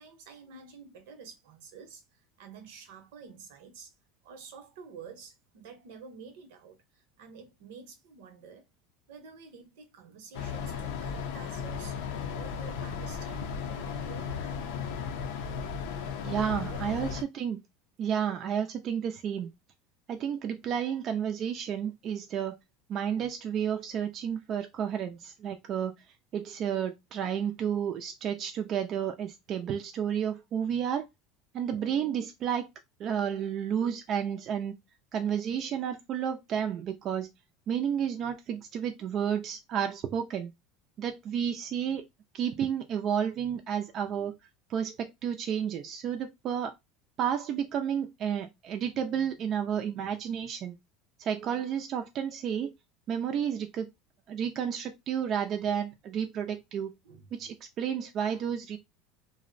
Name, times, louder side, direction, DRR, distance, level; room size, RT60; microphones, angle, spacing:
voice 1, 0.0-3.9 4.2-8.6 9.1-12.0 12.3-15.1 16.2-17.2 57.0-57.3, right 5 dB, 80° right, 0.8 m, -49 dB
sound 1, 10.3-17.2, left 6 dB, 80° left, 0.5 m, -35 dB
voice 2, 16.2-17.6 18.0-19.5 20.1-22.6 22.9-25.9 26.3-31.1 31.5-32.7 33.0-34.8 35.1-37.3 37.7-40.5 41.0-42.1 42.3-44.3 44.7-46.7 47.2-50.8 51.2-52.7 53.1-53.9 54.3-56.9 57.3-58.8, right 8 dB, 45° right, 0.4 m, -31 dB
2.6 x 2.0 x 2.5 m
supercardioid pair, 130°, 0 cm